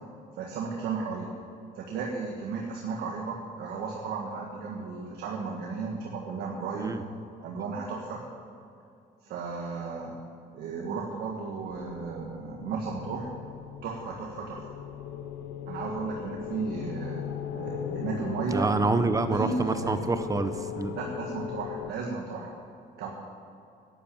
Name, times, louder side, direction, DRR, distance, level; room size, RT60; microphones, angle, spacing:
voice 1, 0.3-1.3 1.7-7.0 7.4-8.2 9.2-10.1 10.5-13.3 13.8-14.6 15.7-18.7 19.3-20.1 20.9-22.5 23.0-23.1, right 4 dB, 70° right, 0 dB, 1.6 m, -34 dB
sound 1, 11.6-21.9, left 9 dB, 85° left, 0.9 m, -38 dB
voice 2, 18.5-21.0, right 3 dB, 20° right, 10 dB, 0.8 m, -27 dB
11.0 x 8.9 x 8.7 m, 2.4 s
cardioid pair, 110°, 17 cm